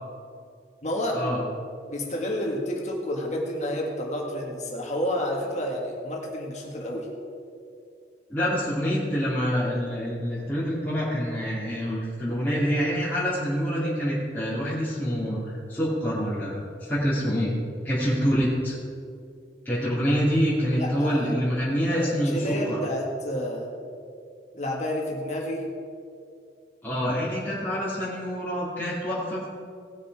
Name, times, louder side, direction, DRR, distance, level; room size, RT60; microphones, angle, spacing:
voice 1, 0.8-1.4 1.9-7.1 20.7-21.3 21.9-23.7 24.5-25.7, equal, 40° left, -1 dB, 1.9 m, -30 dB
voice 2, 8.3-17.5 17.8-18.7 19.6-22.8 26.8-29.5, equal, 10° left, -12 dB, 2.5 m, -26 dB
18.5 x 6.7 x 4.8 m, 2.4 s
head